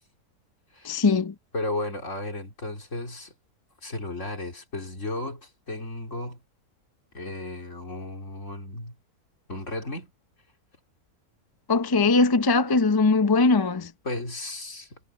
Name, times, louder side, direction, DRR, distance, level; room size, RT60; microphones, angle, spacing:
voice 1, 0.8-1.3 11.7-13.9, left 3 dB, 30° left, 0.4 m, -20 dB
voice 2, 1.5-3.3 3.8-6.4 7.1-9.0 9.5-10.1 14.0-15.0, left 2 dB, 50° left, 4.1 m, -34 dB
omnidirectional pair, 1.6 m